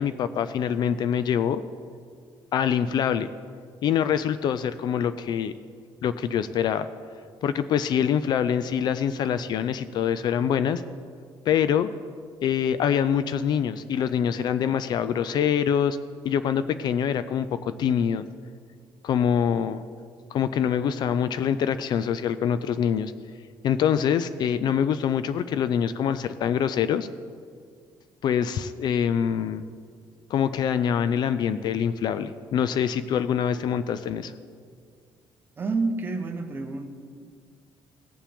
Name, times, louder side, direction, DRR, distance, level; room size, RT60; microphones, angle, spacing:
voice 1, 0.0-1.6 2.5-3.3 3.8-5.5 6.0-6.9 7.4-10.8 11.5-11.9 12.4-16.0 16.2-18.2 19.0-19.8 20.3-23.1 23.6-27.1 28.2-29.6 30.3-34.3, left 8 dB, 50° left, 13 dB, 0.3 m, -25 dB
voice 2, 35.6-36.9, right 3 dB, 20° right, 5 dB, 0.8 m, -28 dB
17.5 x 7.4 x 3.5 m, 2.1 s
cardioid pair, 175°, 9 cm